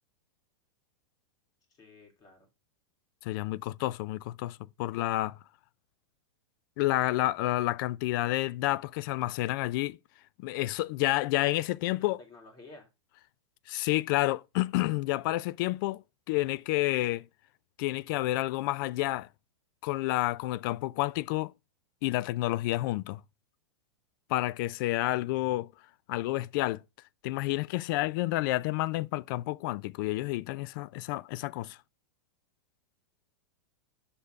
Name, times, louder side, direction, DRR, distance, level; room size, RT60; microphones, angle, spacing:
voice 1, 1.7-2.5 11.8-12.9, left 3 dB, 25° left, 3.3 m, -52 dB
voice 2, 3.2-5.4 6.8-10.0 10.4-12.2 13.7-16.0 16.3-17.2 17.8-19.3 19.8-21.5 22.0-23.2 24.3-25.7 26.1-26.8 27.2-31.8, left 17 dB, 50° left, 0.4 m, -29 dB
6.7 x 5.5 x 4.6 m
supercardioid pair, 145°, 15 cm